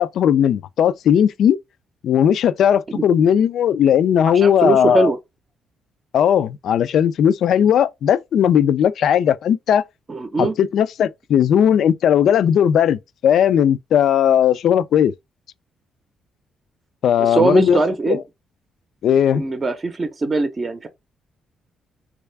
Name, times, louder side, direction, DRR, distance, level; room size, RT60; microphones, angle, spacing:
voice 1, 0.0-1.6 2.0-5.1 6.1-9.8 10.4-15.1 17.0-17.8 18.1-18.2 19.0-19.4, left 9 dB, 70° left, 0.3 m, -17 dB
voice 2, 4.3-5.2 10.1-10.5 17.2-18.2 19.3-20.9, right 3 dB, 35° right, 0.6 m, -21 dB
3.2 x 2.4 x 3.3 m
cardioid pair, 90°, 0 cm